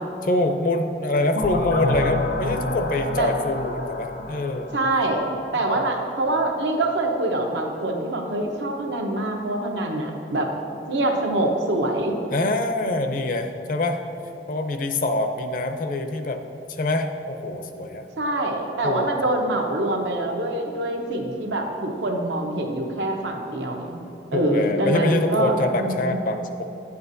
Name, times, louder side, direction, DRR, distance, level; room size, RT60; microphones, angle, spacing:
voice 1, 0.2-4.7 12.3-14.0 14.5-16.4 16.7-18.0 18.8-19.4 24.3-26.6, left 2 dB, 50° left, 6 dB, 0.5 m, -25 dB
sound 1, 1.3-6.0, left 2 dB, 80° left, 0.8 m, -29 dB
voice 2, 4.7-10.5 10.9-12.2 18.2-24.0 24.3-26.2, right 1 dB, 85° right, 2 dB, 0.9 m, -25 dB
9.7 x 8.0 x 2.7 m, 2.8 s
head